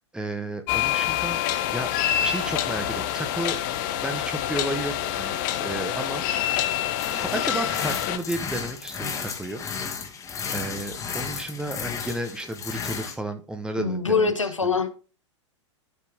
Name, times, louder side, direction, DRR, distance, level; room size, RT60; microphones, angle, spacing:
voice 1, 0.1-1.9 2.2-3.6 4.0-6.6 7.1-9.6 10.5-14.3 14.6-14.8, right 1 dB, 5° right, 1.0 m, -33 dB
sound 1, 0.7-8.2, left 11 dB, 40° left, 0.9 m, -26 dB
sound 2, 7.0-13.1, left 6 dB, 20° left, 1.8 m, -34 dB
voice 2, 13.8-14.9, left 4 dB, 80° left, 1.0 m, -23 dB
13.0 x 4.4 x 3.6 m
figure-of-eight pair, 95°, 16 cm